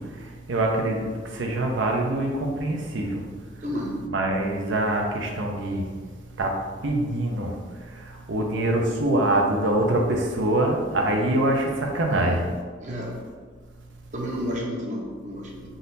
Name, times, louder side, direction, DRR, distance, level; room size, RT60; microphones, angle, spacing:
voice 1, 0.5-1.1 1.4-3.1 4.1-5.8 6.4-6.6 6.8-7.5 8.3-12.4, right 1 dB, 90° right, 1 dB, 0.7 m, -24 dB
voice 2, 3.6-4.0 12.1-12.4 12.8-13.1 14.1-15.6, equal, 40° right, -2 dB, 0.7 m, -31 dB
4.0 x 2.6 x 4.0 m, 1.5 s
head